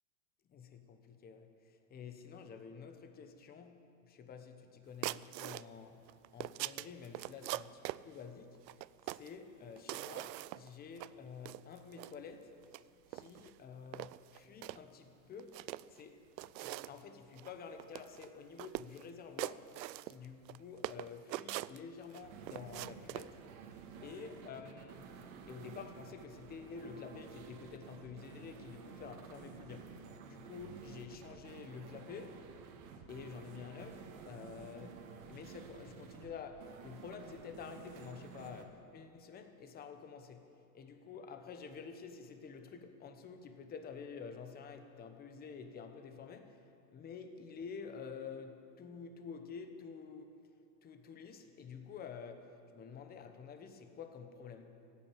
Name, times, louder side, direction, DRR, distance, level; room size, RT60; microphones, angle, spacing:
voice 1, 0.5-6.0 6.3-8.6 9.0-12.5 13.1-16.2 16.6-23.4 24.0-30.0 30.2-32.4 33.1-40.5 40.7-46.6 46.9-50.3 50.8-54.8, left 6 dB, 20° left, 7 dB, 1.0 m, -49 dB
sound 1, 5.0-5.7 6.1-8.0 8.7-9.3 9.8-10.7 11.0-11.1 11.5-12.1 12.6-12.8 13.1-13.5 13.9-14.8 15.4-16.0 16.4-17.0 17.4-17.5 17.8-18.3 18.6-19.0 19.4-20.6 20.8-22.2 22.5-23.3, right 17 dB, 80° right, 0.5 m, -42 dB
sound 2, 22.2-38.7, right 6 dB, 55° right, 1.9 m, -52 dB
15.5 x 9.1 x 9.1 m, 2.6 s
supercardioid pair, 140°, 50 cm